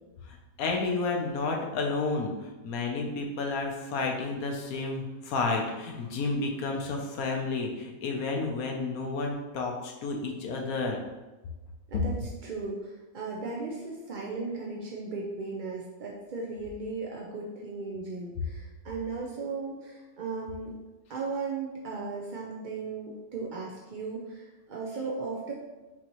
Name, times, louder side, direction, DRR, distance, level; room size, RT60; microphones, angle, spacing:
voice 1, 0.3-11.0, left 3 dB, 90° left, 2 dB, 1.2 m, -31 dB
voice 2, 11.9-20.7 21.1-25.5, right 4 dB, 55° right, -3 dB, 0.5 m, -36 dB
5.9 x 2.9 x 3.0 m, 1.1 s
omnidirectional pair, 1.5 m